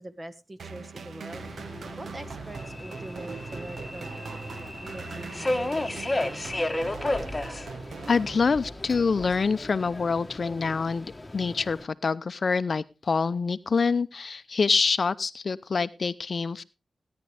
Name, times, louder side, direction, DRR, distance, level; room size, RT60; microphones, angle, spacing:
voice 1, 0.0-1.4 2.0-4.4 4.8-5.7, right 1 dB, 30° right, 10 dB, 1.6 m, -43 dB
sound 1, 0.6-8.9, right 5 dB, 80° right, 1.0 m, -41 dB
Subway metro underground, 1.3-11.8, left 1 dB, 20° left, 1.4 m, -34 dB
voice 2, 8.1-16.6, left 4 dB, 55° left, 15 dB, 0.6 m, -26 dB
16.5 x 10.5 x 3.4 m, 0.28 s
cardioid pair, 75°, 0 cm